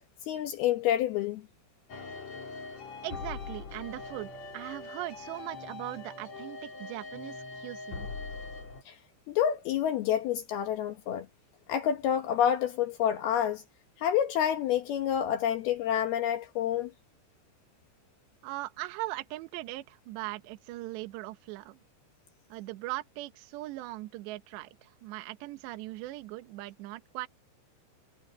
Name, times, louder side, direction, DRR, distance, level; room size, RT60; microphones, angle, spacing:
voice 1, 0.3-1.5 8.9-9.0 9.3-11.3 11.7-13.6 14.0-16.9, left 10 dB, 70° left, 2.6 m, -28 dB
sound 1, 1.9-8.8, left 4 dB, 40° left, 3.9 m, -42 dB
voice 2, 3.0-8.1 18.4-21.8 22.5-27.3, right 17 dB, 75° right, 3.0 m, -40 dB
omnidirectional pair, 5.6 m